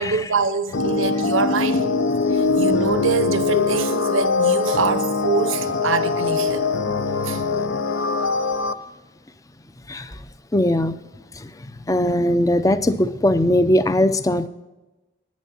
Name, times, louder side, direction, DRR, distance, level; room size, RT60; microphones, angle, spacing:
voice 1, 0.0-1.8 2.3-6.7 7.2-7.4, right 4 dB, 80° right, 0.8 m, -24 dB
sound 1, 0.7-8.7, left 4 dB, 65° left, 0.6 m, -22 dB
voice 2, 6.8-7.4 9.9-10.2 10.5-11.0 11.3-14.5, left 1 dB, 15° left, 0.5 m, -21 dB
10.5 x 9.5 x 4.3 m
head